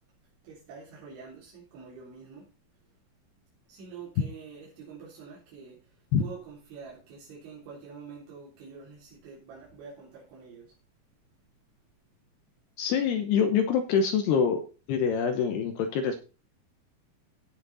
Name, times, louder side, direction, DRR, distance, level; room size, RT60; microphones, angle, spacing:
voice 1, 0.4-2.5 3.7-10.7, right 5 dB, 80° right, 5.9 m, -46 dB
voice 2, 12.8-14.6 14.9-16.2, left 6 dB, 75° left, 2.8 m, -25 dB
16.5 x 5.9 x 4.1 m
omnidirectional pair, 5.3 m